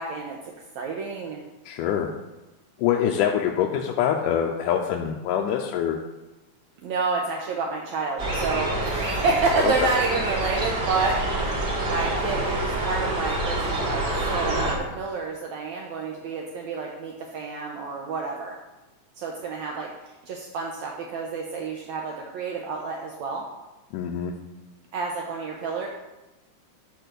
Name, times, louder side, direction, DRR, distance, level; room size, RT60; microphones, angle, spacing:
voice 1, 0.0-1.4 6.8-18.6 19.2-23.5 24.9-25.9, right 4 dB, 70° right, 0 dB, 1.9 m, -29 dB
voice 2, 1.7-2.1 2.8-6.0 9.6-9.9 23.9-24.3, left 9 dB, 90° left, 1 dB, 2.1 m, -24 dB
sound 1, 8.2-14.8, right 2 dB, 40° right, 1.7 m, -27 dB
10.5 x 3.8 x 6.6 m, 1.1 s
omnidirectional pair, 3.6 m